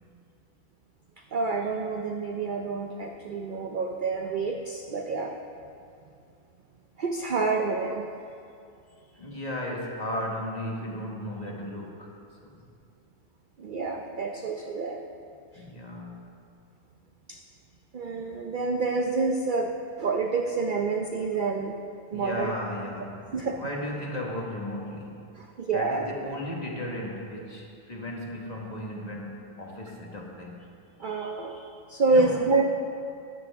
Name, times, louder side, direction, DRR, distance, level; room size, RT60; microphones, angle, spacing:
voice 1, 1.3-5.3 7.0-8.1 13.6-15.0 17.3-17.4 17.9-21.8 22.1-22.5 23.3-23.6 25.4-26.1 31.0-32.7, right 3 dB, 60° right, 3 dB, 0.5 m, -28 dB
voice 2, 9.1-12.6 15.5-16.3 22.1-25.2 25.7-30.7 32.1-32.4, left 1 dB, 30° left, -2 dB, 1.4 m, -35 dB
13.5 x 10.5 x 3.5 m, 2.5 s
omnidirectional pair, 1.5 m